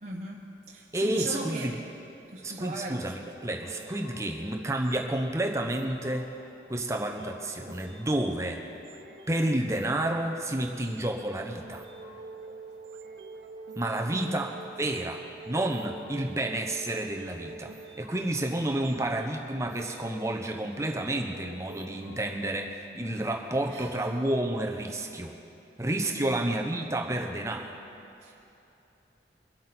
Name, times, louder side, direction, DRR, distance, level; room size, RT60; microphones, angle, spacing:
voice 1, 0.0-1.7 2.3-3.0 14.1-14.4 23.7-23.9 26.0-26.4 28.2-28.3, right 1 dB, 40° right, -3 dB, 1.1 m, -38 dB
voice 2, 0.9-1.8 2.4-6.3 6.7-8.6 9.3-11.9 13.8-25.4 25.8-27.7, right 1 dB, 15° right, 2 dB, 0.9 m, -30 dB
sound 1, 3.4-22.8, right 2 dB, 85° right, 1.2 m, -48 dB
23.5 x 8.3 x 4.4 m, 3.0 s
head